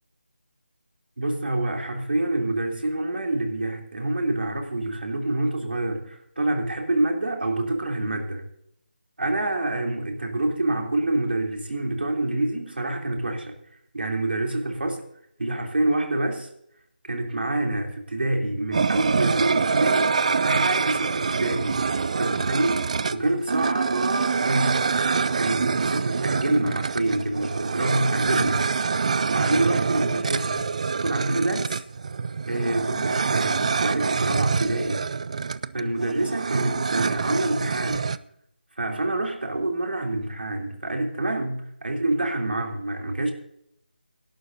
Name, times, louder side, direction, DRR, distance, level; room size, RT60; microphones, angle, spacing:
voice 1, 1.2-8.5 9.2-13.5 13.9-15.0 15.4-16.5 17.0-21.8 22.2-24.8 25.3-28.6 29.3-30.6 31.0-31.8 32.5-35.0 35.7-38.1 38.8-43.3, right 2 dB, 70° right, 2 dB, 3.2 m, -27 dB
sound 1, 18.7-38.2, right 5 dB, 40° right, 0.4 m, -25 dB
24.5 x 11.5 x 2.7 m, 0.72 s
figure-of-eight pair, 160°, 6 cm